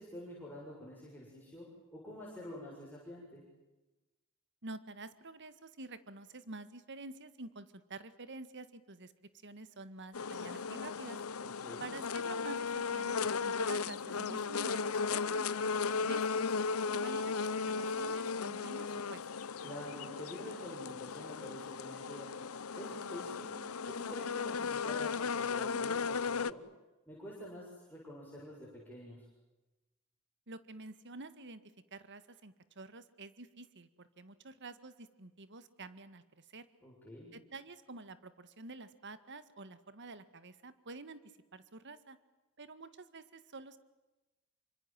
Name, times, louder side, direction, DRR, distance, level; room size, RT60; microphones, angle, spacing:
voice 1, 0.0-3.4 11.4-11.9 19.6-22.3 22.8-23.6 23.9-26.6 27.1-29.3 36.8-37.3, left 1 dB, 10° left, -4 dB, 7.2 m, -48 dB
voice 2, 4.6-11.2 11.8-16.5 16.9-19.2 30.5-31.6 31.9-36.7 37.3-42.2 42.6-43.8, right 3 dB, 55° right, 13 dB, 1.8 m, -49 dB
sound 1, 10.1-26.5, left 5 dB, 85° left, 0.8 m, -36 dB
28.0 x 25.5 x 7.7 m, 1.1 s
head